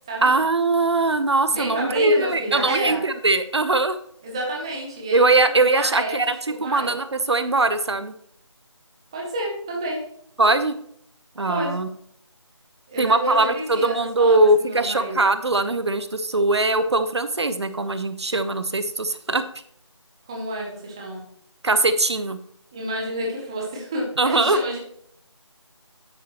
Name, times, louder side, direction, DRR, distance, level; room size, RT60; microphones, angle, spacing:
voice 1, 0.2-4.0 5.1-6.4 6.6-8.1 10.4-10.7 11.4-11.9 13.0-19.4 21.6-22.4 24.2-24.6, right 2 dB, 60° right, 11 dB, 0.9 m, -21 dB
voice 2, 1.5-3.0 4.2-6.2 6.5-6.9 9.1-10.0 11.4-11.8 12.9-15.3 20.3-21.2 22.7-24.8, right 1 dB, 10° right, -2 dB, 0.8 m, -29 dB
9.7 x 8.3 x 3.0 m, 0.68 s
figure-of-eight pair, 170°, 16 cm